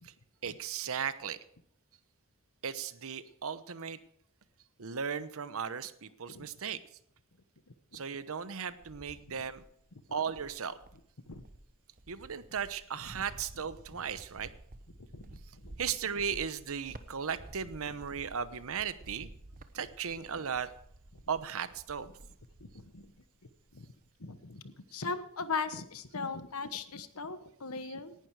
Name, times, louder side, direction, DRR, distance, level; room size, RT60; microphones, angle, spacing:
voice 1, 0.4-1.4 2.6-4.0 4.8-6.8 7.9-9.6 10.1-10.8 12.1-14.5 15.8-19.3 19.7-20.7 21.3-22.1 27.8-27.9, right 7 dB, 65° right, 14 dB, 0.9 m, -36 dB
Cricket, 8.3-9.8 10.3-23.3 23.6-24.1, right 1 dB, 40° right, 1.0 m, -53 dB
voice 2, 15.1-15.7 22.9-23.0 23.7-23.9 24.2-28.1, left 4 dB, 75° left, 12 dB, 1.2 m, -38 dB
18.0 x 11.5 x 4.8 m, 0.68 s
head